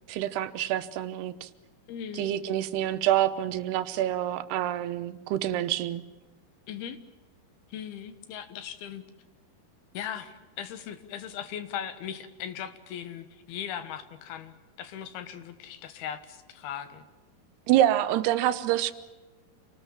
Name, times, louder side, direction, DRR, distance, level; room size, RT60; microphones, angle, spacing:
voice 1, 0.1-1.5 2.1-6.0 17.7-18.9, right 12 dB, 85° right, 11 dB, 3.0 m, -27 dB
voice 2, 1.9-2.3 6.7-7.0 7.7-9.0 9.9-17.0, left 9 dB, 75° left, 11 dB, 3.2 m, -38 dB
27.5 x 19.5 x 7.4 m, 1.2 s
omnidirectional pair, 4.5 m